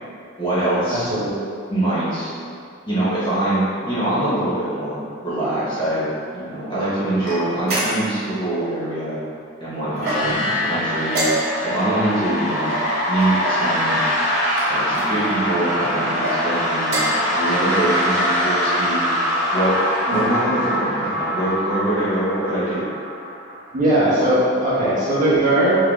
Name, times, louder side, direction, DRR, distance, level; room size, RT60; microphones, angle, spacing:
voice 1, 0.4-1.1 1.7-2.3 2.8-6.1 6.3-9.2 9.6-11.2 11.6-12.7 13.1-14.0 14.7-17.0 17.3-19.1 19.5-19.7 20.1-22.8, right 1 dB, 20° left, -11 dB, 0.8 m, -23 dB
voice 2, 0.9-1.6 10.2-10.4 20.1-20.3 23.7-25.7, right 1 dB, 40° right, -9 dB, 0.7 m, -19 dB
sound 1, 7.2-8.3 10.0-10.5 11.1-11.8 12.7-13.6 14.5-15.1 16.0-16.4 16.8-17.3, right 1 dB, 85° right, 0.8 m, -26 dB
sound 2, 9.9-23.7, equal, 90° left, 0.7 m, -23 dB
3.1 x 2.4 x 2.2 m, 2.3 s
head